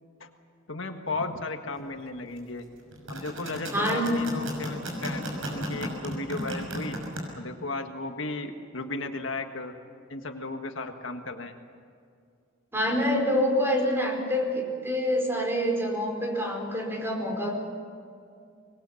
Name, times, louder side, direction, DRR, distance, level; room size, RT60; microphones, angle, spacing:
voice 1, 0.7-2.6 3.1-5.2 5.5-7.0 7.4-9.7 10.1-11.5, left 2 dB, 75° left, 5 dB, 1.6 m, -35 dB
sound 1, 2.9-7.2, right 1 dB, 90° right, 6.2 m, -34 dB
voice 2, 3.7-4.2 12.7-17.5, equal, 10° right, 1 dB, 4.7 m, -26 dB
25.0 x 21.0 x 7.2 m, 2.3 s
head